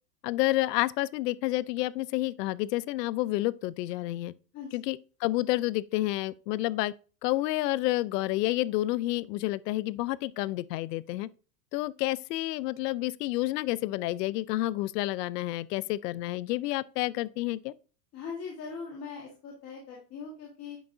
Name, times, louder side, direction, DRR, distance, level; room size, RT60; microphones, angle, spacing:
voice 1, 0.2-4.3 4.7-6.9 7.2-11.3 11.7-17.7, left 17 dB, 75° left, 0.5 m, -29 dB
voice 2, 18.1-20.8, left 5 dB, 30° left, 1.6 m, -40 dB
9.3 x 5.7 x 2.7 m
supercardioid pair, 130°, 49 cm